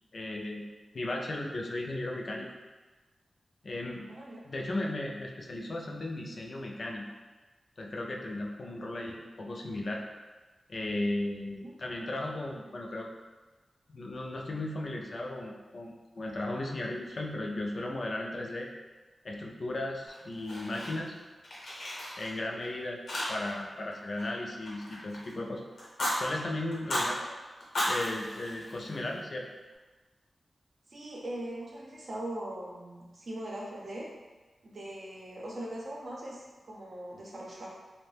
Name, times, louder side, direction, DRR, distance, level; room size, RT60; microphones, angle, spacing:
voice 1, 0.1-0.7 0.9-2.5 3.6-4.1 4.4-7.1 7.8-10.0 10.7-13.1 13.9-18.7 19.2-21.2 22.2-23.0 23.3-25.7 26.1-27.2 27.9-29.5, left 1 dB, 50° left, 0 dB, 0.3 m, -36 dB
voice 2, 4.1-4.5 8.7-8.9 11.6-11.7 27.0-27.3 30.9-34.1 34.6-37.7, right 1 dB, 60° right, -4 dB, 0.6 m, -41 dB
Fire, 20.1-21.2 21.4-22.7 23.1-23.6 23.9-25.3 25.8-26.2 26.7-27.1 27.6-29.2, left 1 dB, 85° left, 0.8 m, -35 dB
2.6 x 2.1 x 3.2 m, 1.2 s
wide cardioid pair, 115°, 0 cm